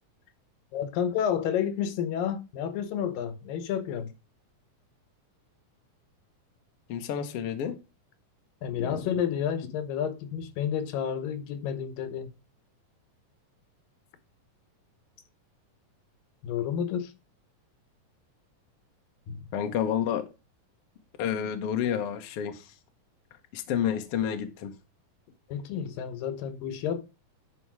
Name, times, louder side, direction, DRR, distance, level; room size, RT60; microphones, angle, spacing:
voice 1, 0.7-4.1 8.6-12.3 16.4-17.1 19.3-19.5 25.5-27.0, left 8 dB, 85° left, 2.8 m, -30 dB
voice 2, 6.9-7.7 8.7-9.0 19.5-20.3 21.2-22.7 23.5-24.7, left 9 dB, 60° left, 1.6 m, -30 dB
11.0 x 4.6 x 4.7 m
omnidirectional pair, 3.9 m